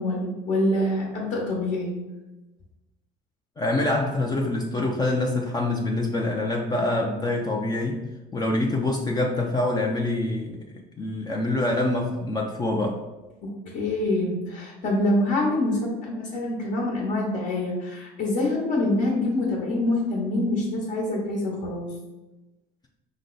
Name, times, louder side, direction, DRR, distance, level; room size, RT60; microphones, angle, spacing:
voice 1, 0.0-1.9 13.4-21.9, left 1 dB, 55° left, -2 dB, 1.2 m, -25 dB
voice 2, 3.6-10.6 11.0-13.0, left 2 dB, 25° left, 0 dB, 0.5 m, -25 dB
5.2 x 2.2 x 3.9 m, 1.1 s
cardioid pair, 100°, 16 cm